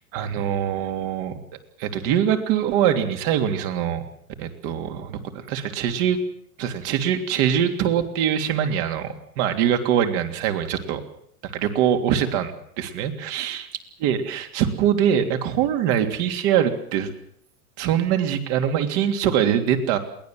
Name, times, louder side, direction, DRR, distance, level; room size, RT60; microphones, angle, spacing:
voice 1, 0.1-1.3 1.8-4.0 4.4-6.2 6.6-11.0 11.5-13.6 14.0-17.1 17.8-20.0, right 9 dB, 45° right, 6 dB, 3.2 m, -23 dB
22.5 x 18.5 x 7.8 m, 0.68 s
supercardioid pair, 150°, 45 cm